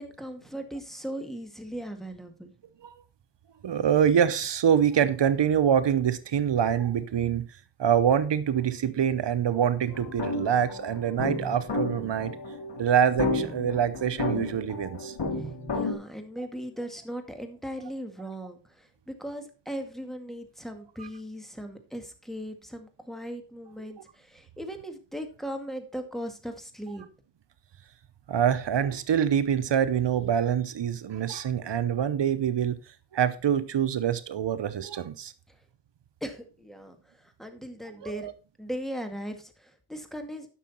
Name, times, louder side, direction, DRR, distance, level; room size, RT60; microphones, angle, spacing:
voice 1, 0.0-2.5 15.4-27.0 35.5-35.6 36.2-38.3 38.6-40.5, equal, ahead, 2.1 m, -38 dB
voice 2, 3.6-7.5 7.8-12.3 12.8-15.1 28.3-32.8 33.1-35.3 38.1-38.3, right 8 dB, 90° right, 0.8 m, -25 dB
sound 1, 9.9-15.9, left 3 dB, 80° left, 2.7 m, -32 dB
11.5 x 6.3 x 4.3 m
cardioid pair, 55°, 41 cm